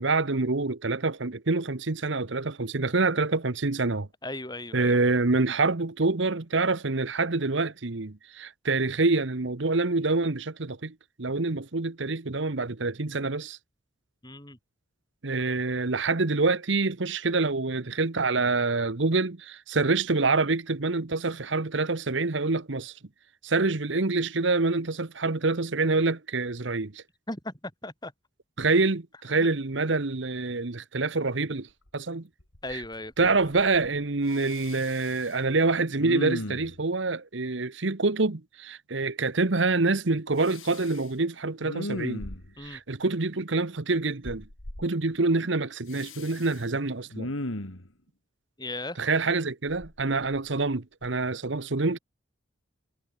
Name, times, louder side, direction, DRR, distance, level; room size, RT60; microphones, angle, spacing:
voice 1, 0.0-4.1 4.7-13.6 15.2-22.9 23.4-27.0 28.6-31.7 31.9-32.3 32.7-32.8 33.2-42.2 42.6-44.4 44.8-47.3 49.0-52.0, right 3 dB, 65° right, 1.2 m, -26 dB
voice 2, 4.2-4.9 14.2-14.6 27.3-28.1 29.4-29.5 32.6-33.4 42.6-42.8 48.6-49.0, left 2 dB, 20° left, 7.1 m, -37 dB
Respiratory sounds, 31.9-32.0 32.4-32.9 33.2-34.0 34.3-35.3 36.0-36.8 40.4-41.0 41.6-42.7 44.2-44.9 45.9-46.6 47.1-47.9 49.7-50.6 51.0-51.2, left 1 dB, 90° left, 3.3 m, -37 dB
head